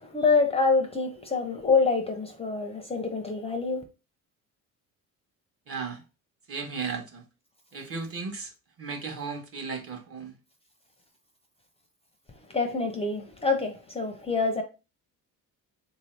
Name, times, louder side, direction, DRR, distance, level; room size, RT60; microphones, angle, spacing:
voice 1, 0.0-3.8 12.5-14.6, left 4 dB, 20° left, 0.5 m, -26 dB
voice 2, 5.7-6.0 6.5-7.2 7.7-8.5 8.8-10.3, right 5 dB, 40° right, 0.9 m, -35 dB
3.8 x 2.6 x 3.2 m
cardioid pair, 145°, 34 cm